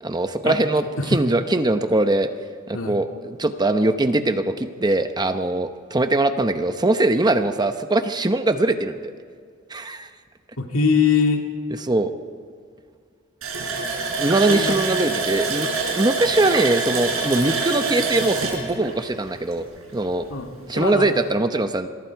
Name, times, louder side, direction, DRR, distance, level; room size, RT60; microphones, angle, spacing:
voice 1, 0.0-2.3 2.7-9.0 9.7-10.1 11.8-12.1 14.2-15.7 16.0-19.6 19.9-20.2 20.7-21.9, right 2 dB, 20° right, 8 dB, 0.9 m, -21 dB
voice 2, 10.6-11.4 14.5-14.8 20.3-21.1, left 5 dB, 80° left, 3 dB, 2.3 m, -22 dB
Water tap faucet, 13.4-19.9 20.2-20.3 20.8-20.9, right 4 dB, 85° right, 5.2 m, -26 dB
26.5 x 23.0 x 4.7 m, 2.1 s
head